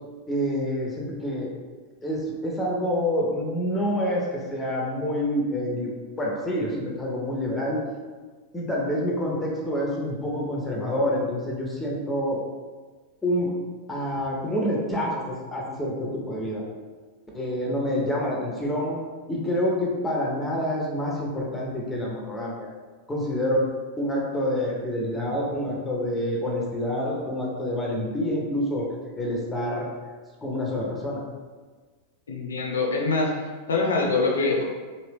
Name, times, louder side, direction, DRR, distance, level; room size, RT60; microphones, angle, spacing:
voice 1, 0.3-1.5 2.0-7.8 8.5-12.4 13.2-13.5 13.9-16.6 17.3-19.0 19.3-22.7 23.1-23.7 24.0-28.9 29.2-29.9 30.4-31.2, equal, 10° left, -3 dB, 0.8 m, -27 dB
voice 2, 32.3-33.3 33.7-34.6, left 3 dB, 65° left, 0 dB, 0.6 m, -24 dB
2.9 x 2.7 x 3.4 m, 1.4 s
figure-of-eight pair, 90°, 0 cm